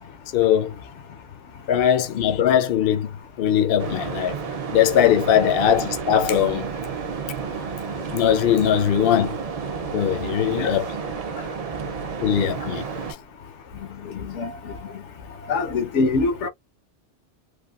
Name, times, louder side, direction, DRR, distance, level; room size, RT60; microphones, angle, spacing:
voice 1, 0.3-0.7 1.7-3.1 3.4-4.4 4.7-6.7 8.1-9.3 9.9-11.0 12.2-12.8, left 9 dB, 60° left, 0.7 m, -20 dB
sound 1, 3.8-13.1, right 6 dB, 50° right, 0.5 m, -31 dB
voice 2, 14.2-14.7 15.5-16.5, left 3 dB, 80° left, 1.1 m, -24 dB
3.3 x 2.2 x 2.3 m
omnidirectional pair, 1.2 m